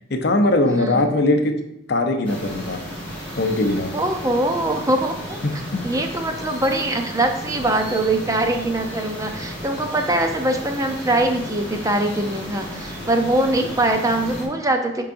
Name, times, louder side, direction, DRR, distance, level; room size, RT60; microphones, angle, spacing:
voice 1, 0.1-1.5 1.9-2.8 3.4-3.9 5.4-5.8, left 2 dB, 50° left, 6 dB, 0.7 m, -20 dB
sound 1, 2.2-14.4, equal, 10° left, 2.4 m, -34 dB
voice 2, 3.9-15.1, right 1 dB, 15° right, 4 dB, 0.5 m, -22 dB
8.3 x 4.7 x 2.6 m, 0.82 s
head